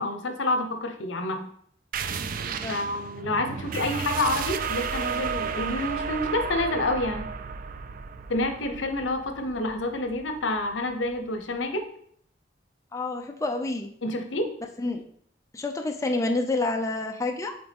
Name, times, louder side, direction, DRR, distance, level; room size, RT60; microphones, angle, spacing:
voice 1, 0.0-1.4 2.7-7.3 8.3-11.8 14.0-14.5, left 2 dB, 85° left, 6 dB, 0.8 m, -28 dB
sound 1, 1.9-11.2, right 6 dB, 50° right, 0.4 m, -33 dB
voice 2, 2.5-2.8 12.9-13.9 14.8-15.0 15.5-17.6, left 2 dB, 15° left, 3 dB, 0.5 m, -28 dB
8.0 x 3.4 x 3.5 m, 0.64 s
head